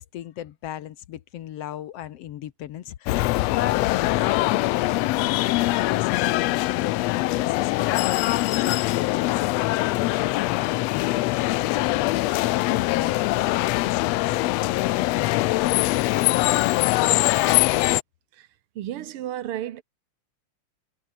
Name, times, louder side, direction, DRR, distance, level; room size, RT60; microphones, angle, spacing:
voice 1, 0.0-6.9 7.3-12.3 12.6-15.8 16.1-17.1, left 12 dB, 65° left, 1.8 m, -37 dB
sound 1, 3.1-18.0, left 18 dB, 80° left, 1.5 m, -23 dB
voice 2, 18.7-19.8, right 12 dB, 60° right, 1.5 m, -32 dB
omnidirectional pair, 3.4 m